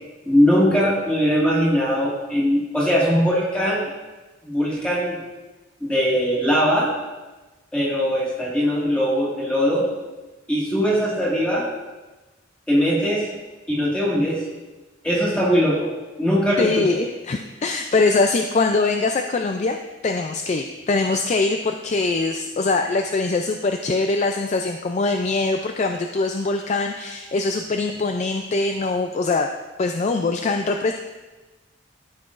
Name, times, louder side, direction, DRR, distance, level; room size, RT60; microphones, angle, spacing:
voice 1, 0.3-3.9 4.4-5.2 5.8-6.9 7.7-9.8 10.5-11.7 12.7-13.2 13.7-14.4 15.0-15.9 16.2-16.9, equal, 5° left, -6 dB, 1.9 m, -20 dB
voice 2, 16.6-19.8 20.0-29.5 29.8-30.9, left 3 dB, 35° left, 5 dB, 0.3 m, -22 dB
13.0 x 5.9 x 2.5 m, 1.2 s
head